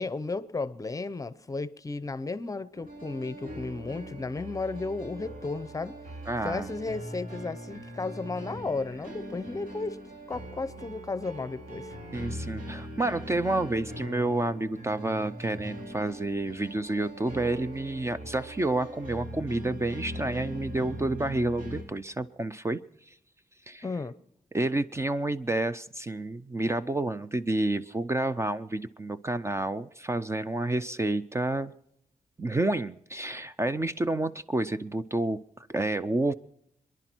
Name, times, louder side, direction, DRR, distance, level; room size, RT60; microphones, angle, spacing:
voice 1, 0.0-6.0 6.4-10.0 10.3-12.0 23.8-24.2, left 3 dB, 25° left, 0.7 m, -34 dB
sound 1, 2.7-21.8, equal, 85° right, 4.9 m, -41 dB
voice 2, 6.3-6.7 12.1-22.8 23.1-23.2 23.7-23.8 24.5-31.7 32.4-35.4 35.7-36.3, right 2 dB, 20° right, 0.5 m, -29 dB
27.5 x 11.0 x 4.5 m
wide cardioid pair, 110°, 14 cm